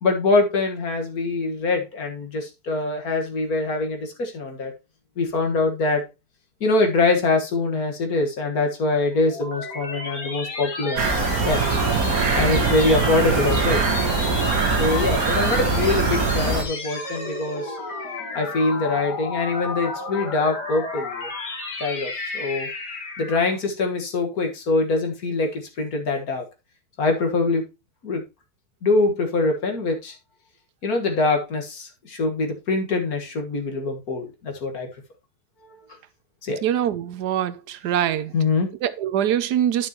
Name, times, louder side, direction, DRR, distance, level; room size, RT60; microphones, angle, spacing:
voice 1, 0.0-4.7 5.2-6.0 6.6-11.0 11.5-11.6 12.3-13.8 14.8-17.8 18.3-21.3 21.8-22.7 23.2-26.4 27.0-27.7 28.0-28.2 28.8-30.1 30.8-34.9 36.4-36.6 38.3-38.7, left 3 dB, 65° left, 2.1 m, -23 dB
sound 1, 8.9-23.6, left 3 dB, 90° left, 2.5 m, -32 dB
sound 2, 11.0-16.6, right 4 dB, 60° right, 1.8 m, -22 dB
voice 2, 36.6-38.3 38.8-39.9, right 10 dB, 80° right, 1.3 m, -23 dB
10.5 x 6.3 x 3.0 m
omnidirectional pair, 1.7 m